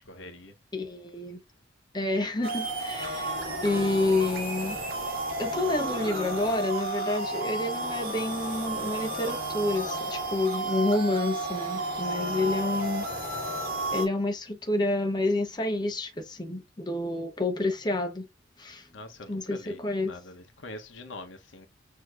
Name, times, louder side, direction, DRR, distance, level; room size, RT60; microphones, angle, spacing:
voice 1, 0.1-0.5 12.2-12.3 18.9-21.7, left 2 dB, 75° left, 1.0 m, -44 dB
voice 2, 0.7-1.4 1.9-4.8 5.4-13.5 13.9-18.3 18.6-18.9 19.3-20.1, left 2 dB, 20° left, 0.8 m, -29 dB
sound 1, 2.4-14.1, right 2 dB, 50° right, 1.8 m, -32 dB
6.3 x 2.8 x 2.4 m
head